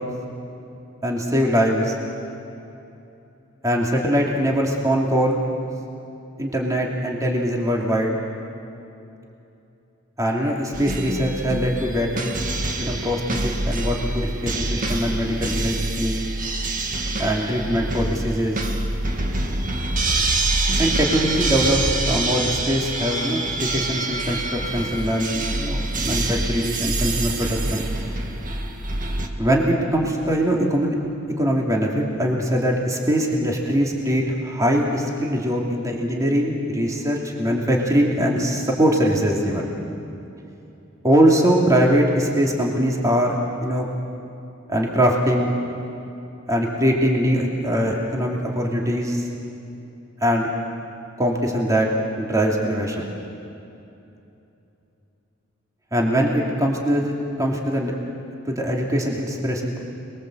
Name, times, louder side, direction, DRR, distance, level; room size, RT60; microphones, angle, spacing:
voice 1, 1.0-1.9 3.6-5.4 6.4-8.1 10.2-12.3 12.8-16.3 17.2-18.6 20.8-27.9 29.4-31.0 31.4-39.7 41.0-43.4 43.6-43.9 44.7-45.5 46.5-49.2 50.2-50.5 51.2-51.9 52.2-53.1 55.9-57.9 58.4-59.8, equal, 15° right, -1 dB, 2.9 m, -22 dB
sound 1, 10.7-29.3, right 2 dB, 45° right, 2.0 m, -26 dB
28.0 x 22.0 x 8.0 m, 2.8 s
head